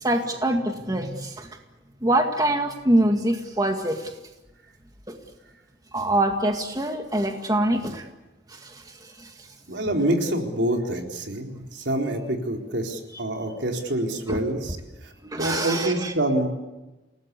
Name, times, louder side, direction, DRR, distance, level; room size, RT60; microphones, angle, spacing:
voice 1, 0.0-1.5 2.0-4.1 5.1-5.2 5.9-8.1 8.5-8.8 9.2-9.3 14.3-14.4 15.2-16.1, right 1 dB, 20° right, 4 dB, 2.0 m, -24 dB
voice 2, 9.7-14.8 15.0-16.5, right 1 dB, 75° right, 2 dB, 4.1 m, -26 dB
29.0 x 19.0 x 8.3 m, 1.1 s
head